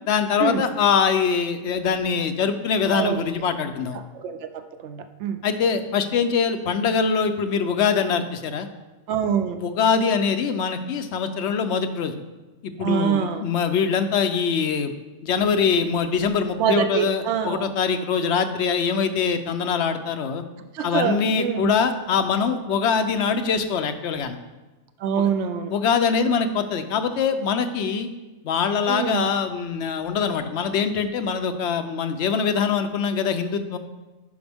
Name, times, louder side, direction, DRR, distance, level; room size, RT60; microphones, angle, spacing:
voice 1, 0.1-4.0 5.4-8.7 9.6-12.1 12.6-14.9 15.2-20.4 20.8-24.4 25.2-25.3 25.7-28.1 28.4-33.8, left 6 dB, 65° left, 8 dB, 0.9 m, -23 dB
voice 2, 4.1-5.4 9.1-9.6 12.8-13.4 16.6-17.7 20.7-21.7 25.0-25.7 28.9-29.2, right 8 dB, 70° right, 8 dB, 0.9 m, -25 dB
11.5 x 5.0 x 3.5 m, 1.2 s
omnidirectional pair, 1.3 m